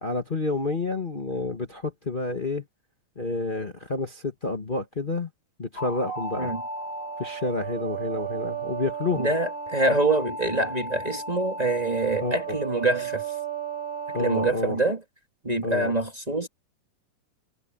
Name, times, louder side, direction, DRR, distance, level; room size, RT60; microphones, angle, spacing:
voice 1, 0.0-2.6 3.1-5.3 5.6-6.5 7.2-9.3 12.2-12.5 14.1-14.8 15.6-15.9, left 3 dB, 75° left, 0.4 m, -29 dB
sound 1, 5.8-14.5, right 5 dB, 60° right, 7.0 m, -34 dB
voice 2, 9.1-13.3 14.2-15.0 15.4-16.5, right 2 dB, 15° right, 1.5 m, -25 dB
omnidirectional pair, 3.9 m